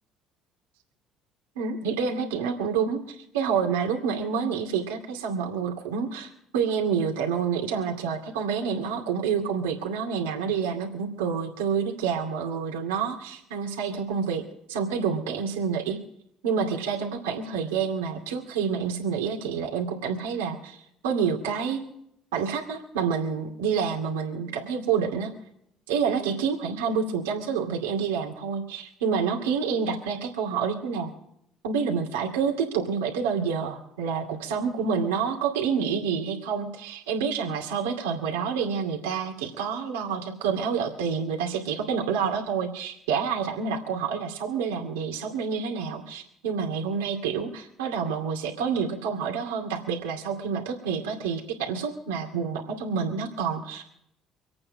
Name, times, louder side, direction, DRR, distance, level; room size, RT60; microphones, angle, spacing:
voice 1, 1.6-14.4 14.7-16.0 16.4-20.8 21.0-21.8 22.3-25.3 25.9-31.1 31.6-53.8, right 6 dB, 90° right, 1 dB, 2.3 m, -28 dB
25.0 x 8.8 x 5.2 m, 0.74 s
hypercardioid pair, 65°, 0 cm